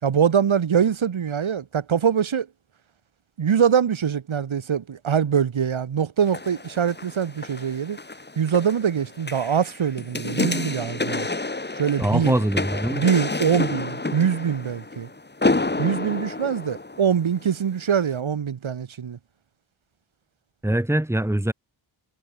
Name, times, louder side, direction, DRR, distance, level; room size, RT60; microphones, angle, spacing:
voice 1, 0.0-2.5 3.4-8.0 8.4-11.3 11.7-12.4 12.9-15.1 15.8-19.2, right 7 dB, 90° right, 5.0 m, -23 dB
sound 1, 6.2-17.5 18.0-18.1, left 2 dB, 20° left, 6.4 m, -29 dB
voice 2, 12.0-13.0 20.6-21.5, right 1 dB, 5° right, 2.5 m, -23 dB
wide cardioid pair, 160°, 46 cm